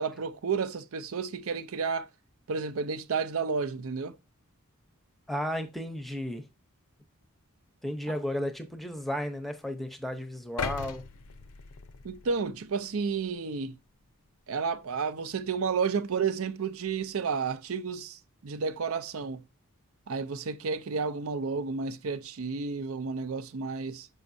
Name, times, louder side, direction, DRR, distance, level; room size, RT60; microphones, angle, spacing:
voice 1, 0.0-2.1 2.5-4.2 12.0-13.8 14.5-19.4 20.1-24.1, right 5 dB, 65° right, 0.5 m, -31 dB
voice 2, 5.3-6.5 7.8-11.0, equal, ahead, 0.7 m, -33 dB
sound 1, 10.6-12.7 13.2-13.4, left 6 dB, 80° left, 0.6 m, -38 dB
7.1 x 5.3 x 2.6 m
head